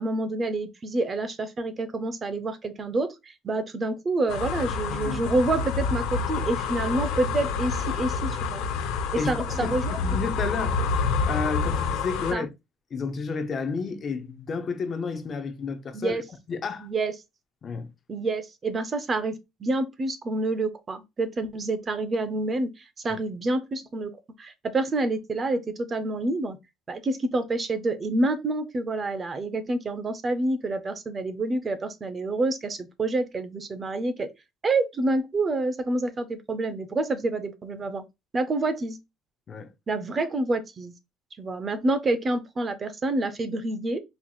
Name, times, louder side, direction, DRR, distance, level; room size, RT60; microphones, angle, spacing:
voice 1, 0.0-8.6 9.3-10.0 12.3-12.4 15.9-16.2 16.8-17.1 18.1-24.1 24.4-26.6 26.9-34.3 34.6-38.0 38.3-39.0 39.9-40.9 41.4-44.0, right 2 dB, 25° right, 0.5 m, -28 dB
sound 1, 4.3-12.3, left 5 dB, 90° left, 0.7 m, -28 dB
voice 2, 4.9-5.2 9.2-10.8 11.3-12.5 12.9-16.2 16.5-16.9 17.6-17.9 23.1-23.2 39.5-39.7, left 5 dB, 30° left, 0.5 m, -31 dB
4.2 x 2.8 x 2.3 m
cardioid pair, 150°, 0 cm